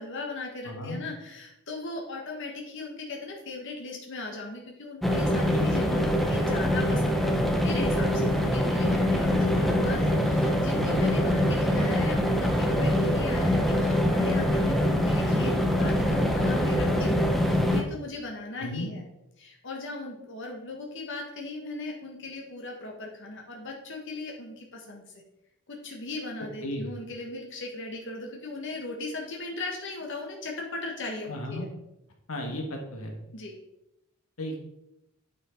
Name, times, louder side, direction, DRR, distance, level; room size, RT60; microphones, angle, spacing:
voice 1, 0.0-19.0 19.4-25.0 25.7-31.7 33.3-33.5, left 3 dB, 55° left, 0 dB, 1.5 m, -38 dB
voice 2, 0.6-1.0 5.4-6.3 10.7-11.0 18.6-18.9 26.6-26.9 31.3-31.7 32.3-33.2 34.4-34.6, left 1 dB, 75° left, 3 dB, 1.6 m, -35 dB
sound 1, 5.0-17.8, equal, ahead, 0.8 m, -24 dB
9.0 x 6.2 x 4.5 m, 0.88 s
head